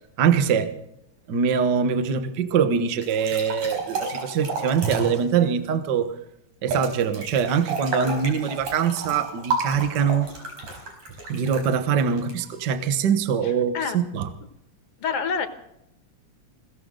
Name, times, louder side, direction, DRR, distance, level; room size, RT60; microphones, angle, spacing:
voice 1, 0.2-0.7 1.3-6.1 6.6-10.3 11.3-14.3, right 7 dB, 50° right, 9 dB, 1.4 m, -23 dB
sound 1, 3.0-5.3 6.7-12.8, right 3 dB, 65° right, 5.8 m, -31 dB
voice 2, 13.4-14.0 15.0-15.5, left 6 dB, 60° left, 8 dB, 2.1 m, -27 dB
21.5 x 17.0 x 3.9 m, 0.80 s
omnidirectional pair, 3.3 m